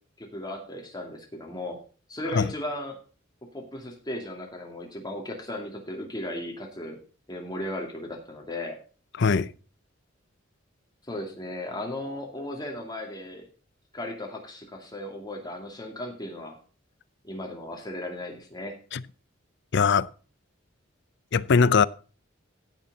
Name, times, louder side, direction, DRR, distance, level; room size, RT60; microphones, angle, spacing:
voice 1, 0.2-1.8 2.1-3.0 3.5-7.0 7.3-8.8 11.1-13.5 13.9-16.6 17.2-18.8, left 1 dB, 20° left, 2.4 m, -36 dB
voice 2, 9.2-9.5 18.9-19.0 19.7-20.1 21.3-21.8, left 5 dB, 60° left, 0.5 m, -21 dB
16.0 x 6.0 x 4.1 m
head